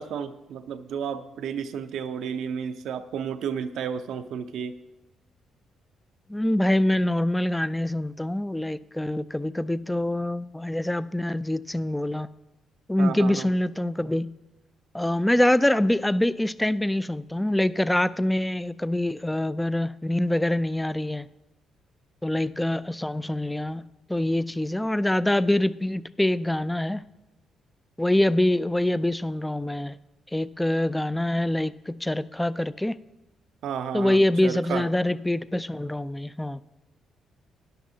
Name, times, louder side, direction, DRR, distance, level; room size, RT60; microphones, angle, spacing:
voice 1, 0.0-4.8 13.0-13.5 33.6-34.9, right 7 dB, 75° right, 9 dB, 0.6 m, -32 dB
voice 2, 6.3-12.3 12.9-14.3 14.9-21.3 22.2-23.8 24.1-27.0 28.0-30.0 30.3-33.0 33.9-36.6, left 1 dB, 10° left, 16 dB, 0.3 m, -25 dB
13.5 x 10.5 x 2.8 m, 1.0 s
cardioid pair, 90°, 0 cm